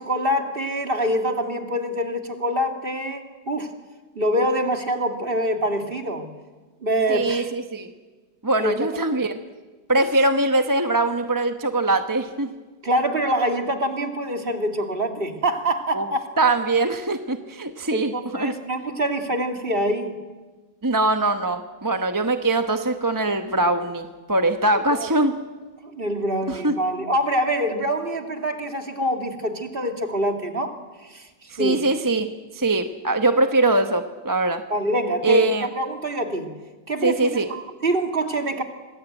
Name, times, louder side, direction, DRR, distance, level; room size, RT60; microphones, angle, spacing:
voice 1, 0.0-3.7 4.1-6.3 6.8-7.5 8.6-8.7 12.8-16.2 17.9-20.1 24.9-25.1 25.8-30.7 31.0-31.8 34.7-36.5 36.9-38.6, equal, 30° right, 5 dB, 2.4 m, -25 dB
voice 2, 7.1-7.9 8.4-9.3 9.9-12.5 15.9-16.1 16.4-18.5 20.8-25.4 26.5-26.7 31.5-32.3 32.5-34.6 35.2-35.7 37.0-37.5, right 2 dB, 15° right, 7 dB, 0.8 m, -22 dB
26.5 x 20.0 x 9.1 m, 1.3 s
omnidirectional pair, 1.8 m